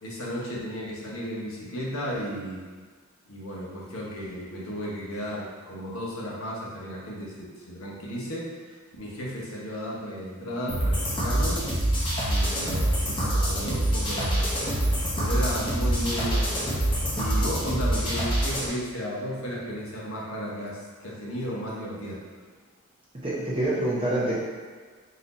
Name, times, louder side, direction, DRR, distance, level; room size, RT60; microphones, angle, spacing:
voice 1, 0.0-2.6 3.3-11.7 12.2-14.7 15.2-16.7 17.1-22.2, equal, 85° left, -4 dB, 1.1 m, -34 dB
sound 1, 10.7-18.7, right 1 dB, 25° left, 0.9 m, -25 dB
voice 2, 23.2-24.4, right 1 dB, 25° right, -7 dB, 0.8 m, -26 dB
4.0 x 2.8 x 4.0 m, 1.5 s
head